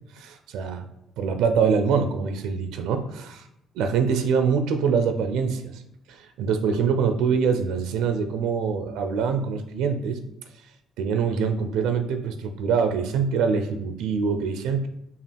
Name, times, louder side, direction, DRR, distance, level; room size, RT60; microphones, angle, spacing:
voice 1, 0.1-0.9 1.2-3.4 3.8-5.8 6.1-10.2 11.0-14.9, right 6 dB, 90° right, 8 dB, 0.4 m, -24 dB
5.4 x 2.4 x 3.4 m, 0.79 s
cardioid pair, 105°, 0 cm